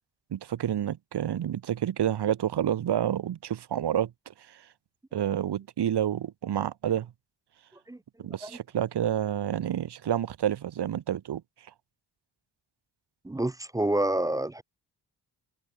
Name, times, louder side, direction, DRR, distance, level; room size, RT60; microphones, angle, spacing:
voice 1, 0.3-4.6 5.1-7.1 8.2-11.4, right 10 dB, 75° right, 2.3 m, -29 dB
voice 2, 13.2-14.6, right 1 dB, 10° right, 0.4 m, -28 dB
wide cardioid pair, 170°, 40 cm